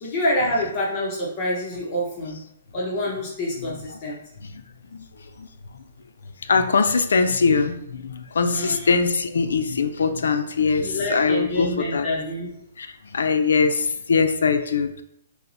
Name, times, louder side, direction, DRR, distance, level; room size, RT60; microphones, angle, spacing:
voice 1, 0.0-2.4 2.7-4.2 8.5-9.0 10.8-12.5, left 1 dB, 30° left, -5 dB, 0.7 m, -27 dB
voice 2, 6.5-12.1 12.8-12.9 13.1-15.0, left 4 dB, 90° left, 8 dB, 0.4 m, -22 dB
5.5 x 2.1 x 2.6 m, 0.76 s
hypercardioid pair, 160°, 0 cm